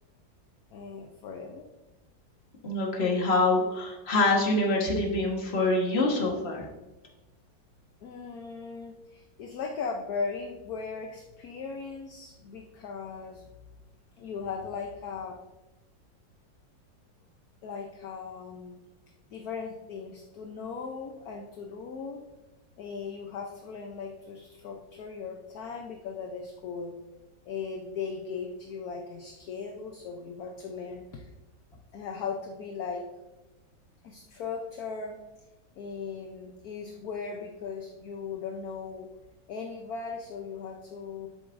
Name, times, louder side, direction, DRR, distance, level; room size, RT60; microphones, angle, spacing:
voice 1, 0.7-1.7 8.0-13.4 14.2-15.3 17.6-18.8 19.3-22.3 22.8-27.0 27.5-31.3 31.9-33.1 34.0-35.2 35.8-39.1 39.5-41.3, left 5 dB, 60° left, 3 dB, 1.1 m, -38 dB
voice 2, 2.6-6.7, left 2 dB, 35° left, 0 dB, 1.5 m, -25 dB
12.5 x 7.0 x 2.6 m, 1.1 s
omnidirectional pair, 2.0 m